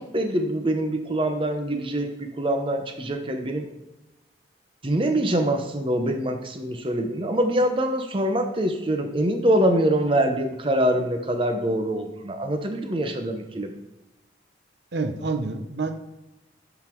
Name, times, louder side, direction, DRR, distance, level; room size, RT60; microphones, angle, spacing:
voice 1, 0.0-3.7 4.8-13.7, right 1 dB, 30° right, 5 dB, 0.7 m, -24 dB
voice 2, 14.9-16.0, right 3 dB, 75° right, 7 dB, 0.7 m, -28 dB
11.0 x 3.9 x 4.5 m, 1.0 s
head